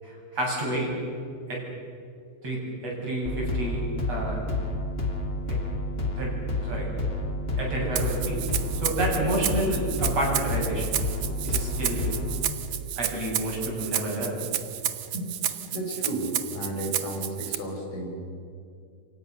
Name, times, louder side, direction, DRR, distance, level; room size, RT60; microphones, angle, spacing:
voice 1, 0.0-0.9 1.5-1.6 2.4-3.8 4.1-4.4 5.5-5.6 6.2-6.3 6.6-6.9 7.6-8.4 8.8-10.9 11.4-12.0 13.0-14.4, right 1 dB, 55° right, -2 dB, 9.1 m, -29 dB
sound 1, 3.2-12.5, left 1 dB, 20° left, 2.4 m, -30 dB
Rattle (instrument), 8.0-17.6, right 11 dB, 75° right, 2.7 m, -31 dB
voice 2, 15.1-18.2, right 1 dB, 75° left, 2 dB, 6.4 m, -33 dB
28.5 x 25.5 x 6.8 m, 2.5 s
omnidirectional pair, 3.4 m